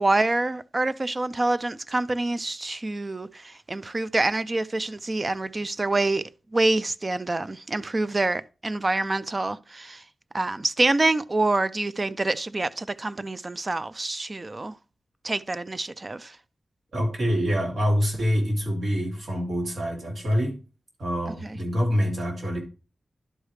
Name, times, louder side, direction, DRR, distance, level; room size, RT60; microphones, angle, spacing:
voice 1, 0.0-6.2 6.5-10.0 10.3-14.8 15.2-16.4 21.3-21.6, right 2 dB, 30° right, 0.3 m, -26 dB
voice 2, 16.9-20.5 21.0-22.6, equal, 65° right, 2.5 m, -25 dB
11.0 x 4.8 x 3.2 m
wide cardioid pair, 115°, 0 cm